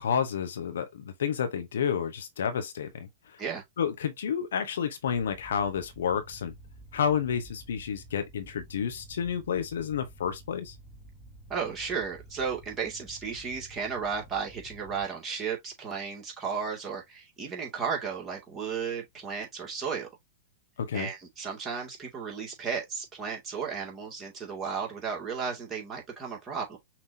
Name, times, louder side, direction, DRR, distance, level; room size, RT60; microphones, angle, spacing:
voice 1, 0.0-3.4 3.8-6.5 6.9-10.8 20.8-21.1, left 7 dB, 75° left, 1.0 m, -30 dB
sound 1, 5.1-15.0, right 1 dB, 25° left, 1.5 m, -51 dB
voice 2, 11.5-20.1 20.9-26.8, right 6 dB, 20° right, 2.3 m, -34 dB
6.0 x 3.0 x 2.7 m
hypercardioid pair, 105°, 0 cm